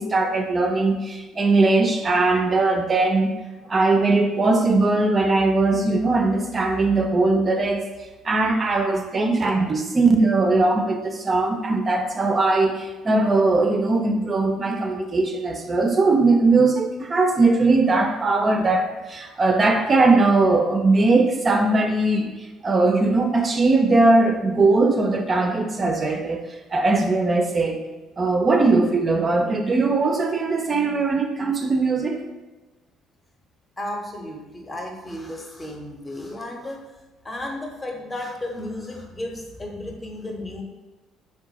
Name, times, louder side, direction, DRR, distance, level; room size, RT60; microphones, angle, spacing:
voice 1, 0.0-3.3 3.7-7.9 8.2-27.8 28.2-32.2, right 3 dB, 35° right, 3 dB, 0.3 m, -20 dB
voice 2, 33.8-36.8 37.2-40.6, left 1 dB, 25° left, 1 dB, 0.7 m, -33 dB
3.7 x 2.1 x 2.8 m, 1.2 s
hypercardioid pair, 55°, 0 cm